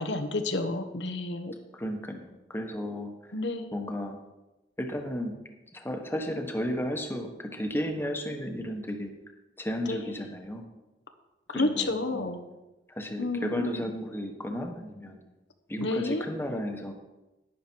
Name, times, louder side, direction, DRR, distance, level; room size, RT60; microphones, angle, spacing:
voice 1, 0.0-1.5 3.3-3.7 9.9-10.0 11.5-12.4 13.2-13.9 15.8-16.2, left 2 dB, 90° left, 6 dB, 1.1 m, -30 dB
voice 2, 1.7-3.1 3.7-4.2 4.8-5.4 5.7-9.1 9.6-10.6 11.5-12.3 12.9-15.2 15.7-16.9, equal, 15° left, 3 dB, 1.2 m, -33 dB
11.0 x 10.0 x 4.6 m, 1.0 s
head